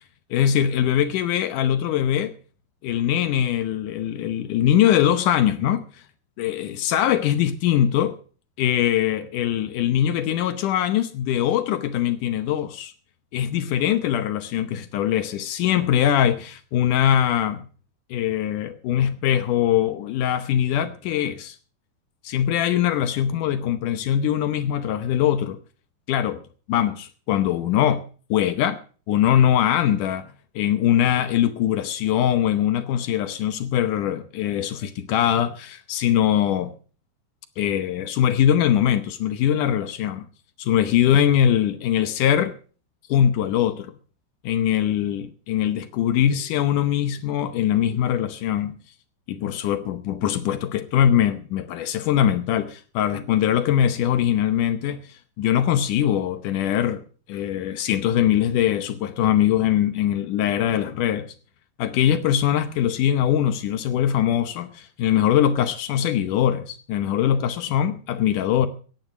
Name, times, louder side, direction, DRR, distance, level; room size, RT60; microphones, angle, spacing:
voice 1, 0.3-2.3 2.8-6.0 6.4-8.2 8.6-12.9 13.3-17.7 18.1-21.6 22.2-25.6 26.1-26.4 26.7-28.0 28.3-28.8 29.1-30.3 30.6-36.7 37.6-40.3 40.6-42.6 43.1-43.9 44.4-48.8 49.3-57.0 57.3-61.3 61.8-68.7, left 10 dB, 75° left, 1.9 m, -22 dB
15.5 x 10.5 x 6.0 m
omnidirectional pair, 4.7 m